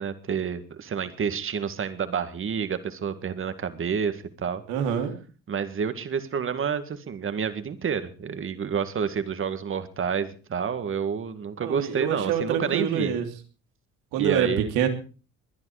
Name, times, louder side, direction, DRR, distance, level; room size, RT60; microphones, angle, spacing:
voice 1, 0.0-4.6 5.5-13.1 14.2-14.7, right 7 dB, 40° right, 11 dB, 2.0 m, -29 dB
voice 2, 4.7-5.1 11.6-13.3 14.1-14.9, right 8 dB, 90° right, 6 dB, 3.2 m, -26 dB
22.0 x 10.5 x 5.0 m, 0.37 s
cardioid pair, 95°, 31 cm